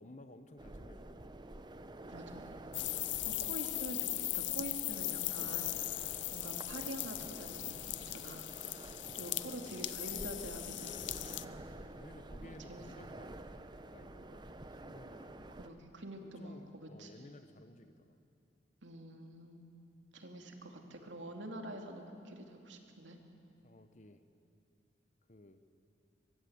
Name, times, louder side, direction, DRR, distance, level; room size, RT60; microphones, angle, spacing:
voice 1, 0.0-1.3 6.0-6.2 9.1-9.7 11.7-13.4 13.8-15.5 16.2-18.2 23.6-24.2 25.3-25.6, left 1 dB, 40° left, 10 dB, 1.1 m, -56 dB
sound 1, 0.6-15.7, right 1 dB, 25° right, 0.8 m, -50 dB
voice 2, 2.1-2.4 3.2-6.0 6.3-8.5 9.1-11.6 12.4-12.9 15.6-17.3 18.8-19.6 20.1-23.2, right 1 dB, 85° right, 3 dB, 2.6 m, -46 dB
sound 2, 2.7-11.4, left 17 dB, 80° left, 0.6 m, -39 dB
23.0 x 22.0 x 8.1 m, 2.6 s
head